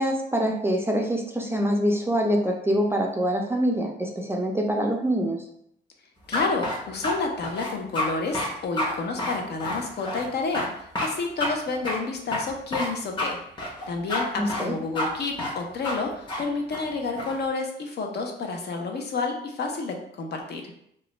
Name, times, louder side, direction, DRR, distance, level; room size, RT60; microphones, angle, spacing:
voice 1, 0.0-5.4 14.4-14.8, equal, 10° right, 1 dB, 0.4 m, -25 dB
voice 2, 6.3-13.4 13.9-20.7, left 3 dB, 55° left, 3 dB, 0.6 m, -30 dB
sound 1, 6.3-7.1 7.4-8.1 8.3-8.5 8.8-8.9 9.2-10.3 10.5-10.7 10.9-11.1 11.4-11.5 11.8-12.0 12.3-12.9 13.2-13.3 13.6-14.2 14.5-14.7 14.9-15.1 15.4-15.5 15.8-16.0 16.3-16.4 16.7-17.4, left 1 dB, 25° left, 0.9 m, -29 dB
2.4 x 2.1 x 3.0 m, 0.72 s
cardioid pair, 90°, 20 cm